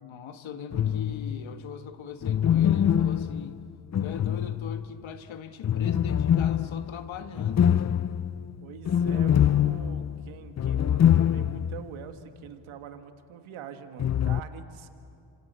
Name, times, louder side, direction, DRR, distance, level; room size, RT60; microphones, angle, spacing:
voice 1, 0.0-3.6 4.0-7.8, left 7 dB, 75° left, 8 dB, 1.6 m, -41 dB
sound 1, 0.7-1.4 2.2-5.0 5.6-11.9 12.1-12.2 14.0-14.4, left 9 dB, 35° left, 0.6 m, -24 dB
voice 2, 8.6-14.9, right 8 dB, 90° right, 8 dB, 1.5 m, -44 dB
26.5 x 26.0 x 8.1 m, 2.6 s
cardioid pair, 75°, 47 cm